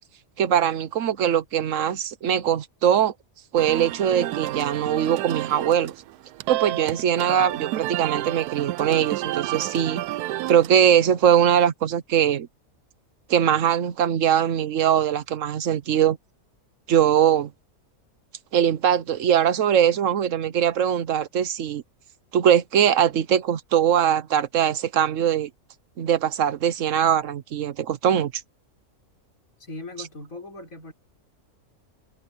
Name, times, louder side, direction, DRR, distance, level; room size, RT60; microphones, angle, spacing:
voice 1, 0.4-3.1 3.5-5.9 6.5-10.0 10.5-12.5 13.3-16.2 16.9-17.5 18.5-21.8 22.3-25.5 26.0-28.3, right 9 dB, 60° right, 1.1 m, -21 dB
sound 1, 3.6-10.8, right 15 dB, 85° right, 1.1 m, -30 dB
voice 2, 29.6-30.9, left 2 dB, 60° left, 5.7 m, -39 dB
omnidirectional pair, 1.6 m